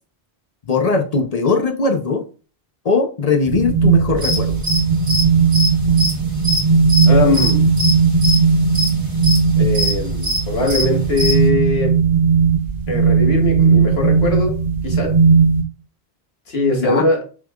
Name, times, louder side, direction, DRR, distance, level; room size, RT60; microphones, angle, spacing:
voice 1, 0.7-2.2 2.8-4.6 16.8-17.1, left 4 dB, 45° left, 5 dB, 0.6 m, -19 dB
sound 1, 3.5-15.6, right 5 dB, 70° right, 1.2 m, -16 dB
sound 2, 4.2-11.4, left 1 dB, 30° right, 1.8 m, -23 dB
voice 2, 7.1-7.7 9.6-12.0 12.9-14.6 14.8-15.2 16.5-17.2, left 2 dB, 75° left, 0 dB, 1.7 m, -20 dB
6.3 x 3.7 x 2.3 m, 0.36 s
omnidirectional pair, 1.1 m